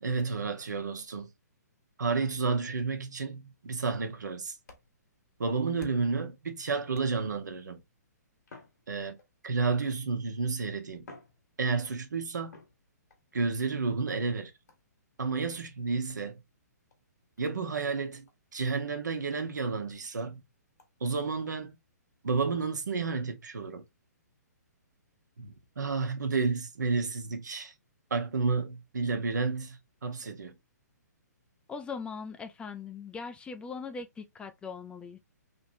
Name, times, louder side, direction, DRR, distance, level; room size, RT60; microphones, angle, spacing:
voice 1, 0.0-1.3 2.0-4.5 5.4-7.8 8.9-9.2 9.4-11.1 11.6-12.6 13.3-14.5 15.2-16.4 17.4-20.4 21.0-21.8 22.2-23.8 25.4-27.7 28.1-30.5, right 4 dB, 75° right, 1.0 m, -31 dB
sound 1, 4.6-6.3 6.9-7.5 8.4-9.5 10.4-10.5 11.0-12.0 12.5-13.2 14.7-15.0 16.1-16.3 16.9-17.0 17.4-17.5 17.8-18.0 18.3-18.4 18.8-18.9 19.3-19.4 19.8-19.9 20.8-20.9, left 3 dB, 70° left, 1.6 m, -54 dB
voice 2, 31.7-35.2, left 5 dB, 10° left, 0.4 m, -40 dB
3.4 x 3.0 x 2.6 m
hypercardioid pair, 130°, 10 cm